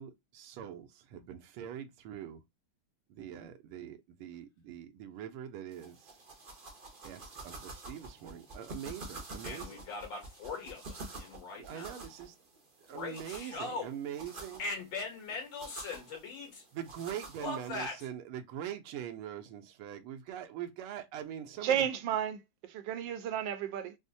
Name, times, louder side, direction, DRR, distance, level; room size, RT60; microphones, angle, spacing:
voice 1, 0.0-2.4 3.1-6.2 7.0-9.8 11.7-12.3 12.8-14.6 16.7-21.8, right 10 dB, 90° right, 1.5 m, -43 dB
sound 1, 5.7-17.7, right 2 dB, 55° right, 0.5 m, -48 dB
voice 2, 9.4-12.1 12.9-13.9 14.6-16.6 17.4-18.0, left 3 dB, 60° left, 2.0 m, -40 dB
voice 3, 21.6-24.0, right 9 dB, 75° right, 1.1 m, -33 dB
4.3 x 2.1 x 2.5 m
omnidirectional pair, 2.3 m